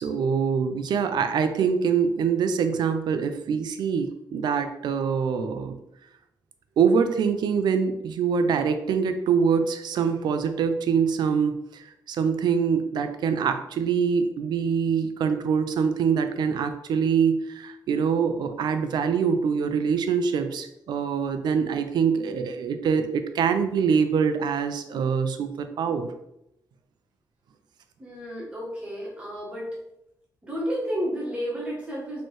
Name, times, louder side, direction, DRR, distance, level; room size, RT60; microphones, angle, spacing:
voice 1, 0.0-5.8 6.8-26.1, right 6 dB, 75° right, 8 dB, 0.4 m, -24 dB
voice 2, 28.0-29.7 30.4-32.2, equal, 15° right, -5 dB, 1.4 m, -31 dB
4.3 x 3.1 x 3.1 m, 0.83 s
wide cardioid pair, 150°, 7 cm